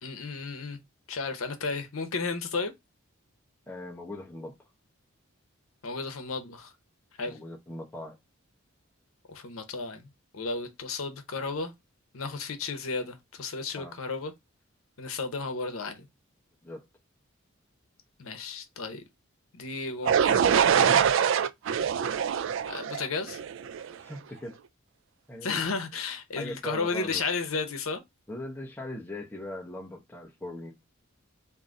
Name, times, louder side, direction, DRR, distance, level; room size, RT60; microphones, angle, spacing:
voice 1, 0.0-0.8 1.1-2.7 5.8-6.7 7.2-7.4 9.3-10.1 10.3-11.7 12.1-14.3 15.0-16.1 18.2-19.0 19.5-21.1 22.7-23.4 25.4-28.0, left 4 dB, 80° left, 0.8 m, -33 dB
voice 2, 3.7-4.6 7.3-8.2 13.7-13.9 16.6-16.8 24.0-24.6 25.3-25.7 26.4-27.2 28.3-30.7, left 1 dB, 10° left, 0.8 m, -40 dB
sound 1, 20.1-23.9, right 8 dB, 65° right, 0.3 m, -24 dB
3.8 x 2.7 x 3.7 m
head